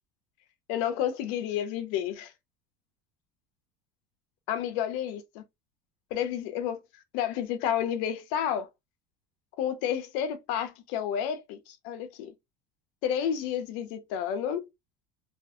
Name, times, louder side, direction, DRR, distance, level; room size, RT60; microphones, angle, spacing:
voice 1, 0.7-2.3 4.5-5.4 6.1-6.8 7.1-8.7 9.6-12.3 13.0-14.7, left 9 dB, 60° left, 0.5 m, -30 dB
2.5 x 2.4 x 2.3 m
cardioid pair, 175°, 10 cm